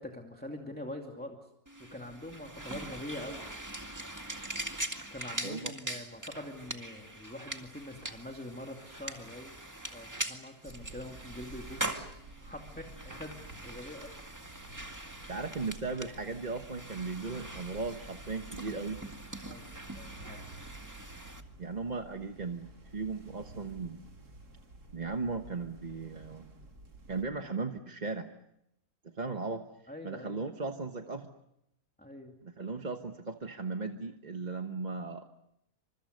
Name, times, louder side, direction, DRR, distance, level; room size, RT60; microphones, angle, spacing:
voice 1, 0.0-1.5 1.8-3.5 5.1-9.6 9.9-13.3 13.6-14.1 19.4-20.4 29.9-30.4 32.0-32.4, left 1 dB, 5° left, 1 dB, 2.4 m, -44 dB
sound 1, 1.7-21.4, right 1 dB, 10° right, 1.9 m, -42 dB
sound 2, 10.6-27.3, right 2 dB, 85° right, 3.9 m, -52 dB
voice 2, 15.3-19.0 21.6-24.0 24.9-26.5 27.1-28.3 29.0-29.6 30.0-31.3 32.4-35.3, right 4 dB, 30° right, 5 dB, 1.2 m, -37 dB
28.5 x 26.5 x 6.7 m, 0.80 s
omnidirectional pair, 1.6 m